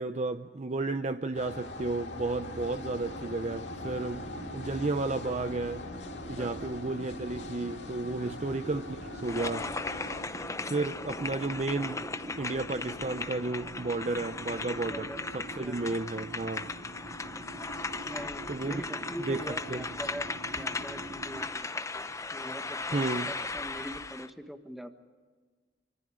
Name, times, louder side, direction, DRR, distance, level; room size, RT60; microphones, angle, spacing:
voice 1, 0.0-5.8 6.3-9.6 10.7-12.0 12.4-15.1 15.3-16.7 18.5-18.8 19.3-19.4 19.7-19.9 22.9-23.3, right 3 dB, 40° right, 8 dB, 0.7 m, -32 dB
sound 1, 1.3-10.2, left 2 dB, 70° left, 2.5 m, -42 dB
sound 2, 2.1-21.5, right 1 dB, 75° right, 4.5 m, -45 dB
voice 2, 6.4-6.7 8.2-8.5 14.8-15.3 15.6-15.9 18.0-24.9, equal, ahead, 7 dB, 1.5 m, -43 dB
sound 3, 9.2-24.3, left 3 dB, 15° left, 0.7 m, -37 dB
26.0 x 25.0 x 5.0 m, 1.5 s
head